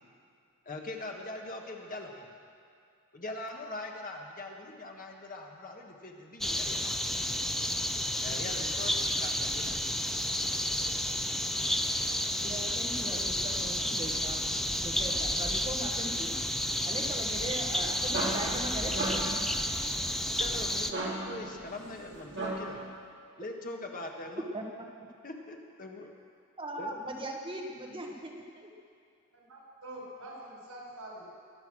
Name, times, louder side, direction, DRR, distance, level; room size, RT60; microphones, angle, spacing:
voice 1, 0.6-2.3 3.1-6.9 8.2-8.9 9.2-9.8 20.4-22.8 23.4-24.5 25.2-26.1 26.8-26.9, left 2 dB, 40° left, 1 dB, 1.6 m, -42 dB
sound 1, 6.4-20.9, equal, ahead, 0.4 m, -31 dB
voice 2, 12.4-16.3 16.8-19.4 24.5-24.6 26.6-28.7, right 1 dB, 25° right, 1 dB, 1.4 m, -39 dB
sound 2, 18.0-22.9, right 2 dB, 55° right, 2.7 m, -37 dB
voice 3, 29.3-31.2, right 1 dB, 85° right, -3 dB, 4.9 m, -45 dB
23.0 x 8.3 x 6.3 m, 2.3 s
head